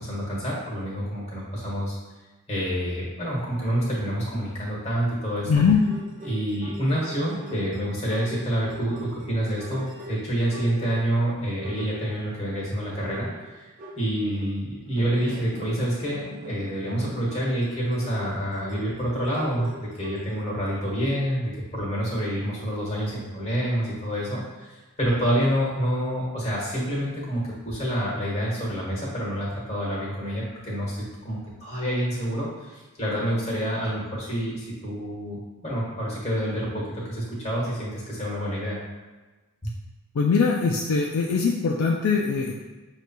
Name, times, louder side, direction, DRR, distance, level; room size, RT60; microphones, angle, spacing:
voice 1, 0.0-1.9 2.5-5.6 6.2-13.3 13.9-38.8 39.6-39.7, equal, 30° left, -5 dB, 1.2 m, -28 dB
voice 2, 5.5-5.8 40.1-42.5, left 5 dB, 65° left, -1 dB, 0.4 m, -21 dB
sound 1, 5.5-11.3 11.6-12.4 12.9-14.5 15.0-20.3, equal, 35° right, 0.6 m, -42 dB
6.3 x 2.7 x 2.2 m, 1.2 s
head